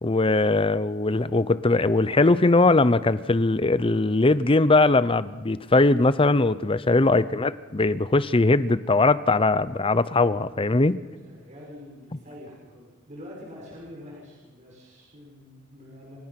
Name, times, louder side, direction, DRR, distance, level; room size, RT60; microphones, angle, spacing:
voice 1, 0.0-11.0, left 2 dB, 30° left, 16 dB, 0.7 m, -20 dB
voice 2, 10.9-16.2, left 1 dB, 40° right, -4 dB, 6.7 m, -45 dB
29.0 x 25.0 x 6.0 m, 1.3 s
head